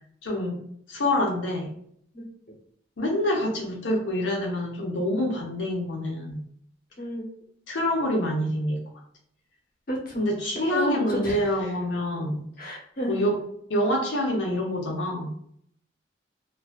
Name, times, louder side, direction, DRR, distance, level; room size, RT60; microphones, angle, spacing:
voice 1, 0.2-0.6 0.9-1.7 3.0-6.4 7.7-8.8 10.1-12.4 13.1-13.4 13.7-15.3, left 1 dB, 80° left, 0 dB, 0.7 m, -26 dB
voice 2, 7.0-7.3 9.9-10.3 10.5-11.4 12.6-13.2, right 1 dB, 50° left, -3 dB, 0.8 m, -30 dB
2.4 x 2.3 x 2.4 m, 0.65 s
head